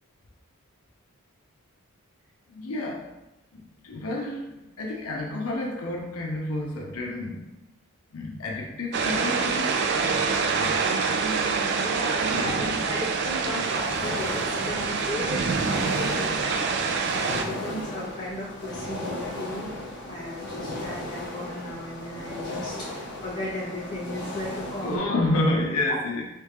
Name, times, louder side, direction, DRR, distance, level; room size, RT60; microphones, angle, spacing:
voice 1, 2.5-3.1 3.5-7.5 8.1-10.0 10.4-10.9 12.3-12.9 24.8-26.2, left 2 dB, 85° left, -1 dB, 0.7 m, -30 dB
sound 1, 8.9-17.4, right 5 dB, 50° right, 0.3 m, -26 dB
voice 2, 10.9-16.4 17.1-19.7 20.0-25.1 25.9-26.0, left 1 dB, 20° left, -8 dB, 1.3 m, -36 dB
sound 2, 13.7-25.0, left 1 dB, 50° left, 0.9 m, -36 dB
3.3 x 3.2 x 3.2 m, 0.95 s
head